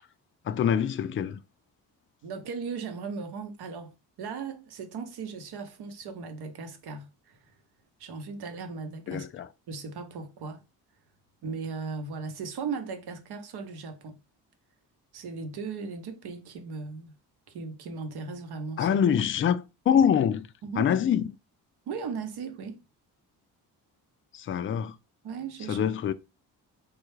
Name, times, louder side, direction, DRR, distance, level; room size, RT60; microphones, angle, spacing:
voice 1, 0.5-1.4 9.1-9.5 18.8-20.5 20.8-21.3 24.3-24.9 25.7-26.1, left 8 dB, 30° left, 0.4 m, -25 dB
voice 2, 2.2-7.5 8.0-9.3 9.7-10.6 11.4-14.2 15.1-17.1 17.5-18.9 20.6-20.9 21.9-22.8 25.2-25.9, right 5 dB, 65° right, 0.9 m, -37 dB
3.3 x 2.3 x 3.1 m
supercardioid pair, 65°, 41 cm